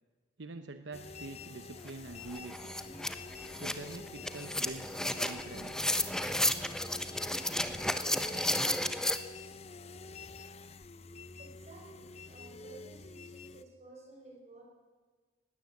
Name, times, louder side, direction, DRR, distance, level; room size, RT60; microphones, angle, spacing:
voice 1, 0.4-2.7 3.6-5.9, right 3 dB, 80° right, 8 dB, 0.9 m, -45 dB
sound 1, 0.9-13.6, left 3 dB, 35° left, 0.7 m, -48 dB
sound 2, 1.9-2.0 2.3-9.2, left 1 dB, 5° left, 0.9 m, -33 dB
voice 2, 11.4-14.6, right 2 dB, 35° right, 0 dB, 6.3 m, -54 dB
20.0 x 16.5 x 7.9 m, 1.4 s
head